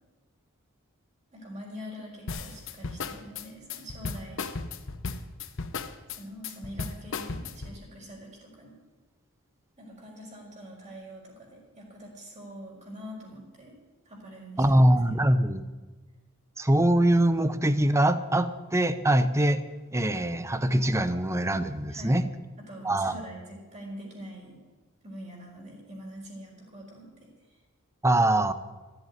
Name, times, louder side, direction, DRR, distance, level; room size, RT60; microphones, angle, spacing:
voice 1, 1.3-4.5 6.1-8.7 9.8-13.8 14.0-14.8 15.2-15.4 21.9-22.2 22.7-24.6 25.0-27.3, equal, 35° right, -2 dB, 4.6 m, -44 dB
sound 1, 2.3-7.8, left 4 dB, 65° left, 0.9 m, -35 dB
voice 2, 14.6-15.6 16.6-19.6 19.9-22.2 22.8-23.1 28.0-28.5, right 1 dB, 15° right, 12 dB, 0.7 m, -23 dB
14.0 x 8.1 x 9.3 m, 1.3 s
head